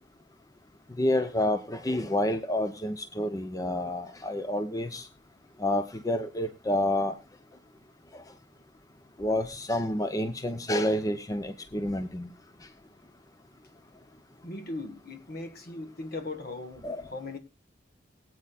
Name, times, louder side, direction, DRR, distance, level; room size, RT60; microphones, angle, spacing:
voice 1, 1.0-5.0 5.6-7.1 9.2-12.3 16.8-17.0, left 1 dB, 20° left, 0.6 m, -29 dB
voice 2, 14.4-17.4, left 2 dB, 50° left, 1.4 m, -38 dB
22.0 x 8.4 x 2.4 m
head